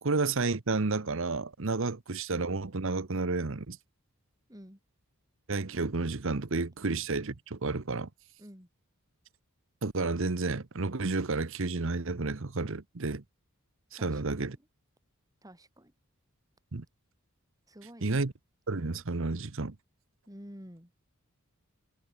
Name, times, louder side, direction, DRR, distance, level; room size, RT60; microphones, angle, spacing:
voice 1, 0.0-3.8 5.5-8.1 9.8-13.2 14.0-14.6 16.7-16.8 18.0-18.3 18.7-19.7, right 3 dB, 60° right, 1.0 m, -31 dB
voice 2, 4.5-4.8 8.4-8.7 14.0-14.2 14.5-14.7 15.4-15.9 17.7-18.2 20.3-20.9, equal, 15° right, 6.9 m, -50 dB
head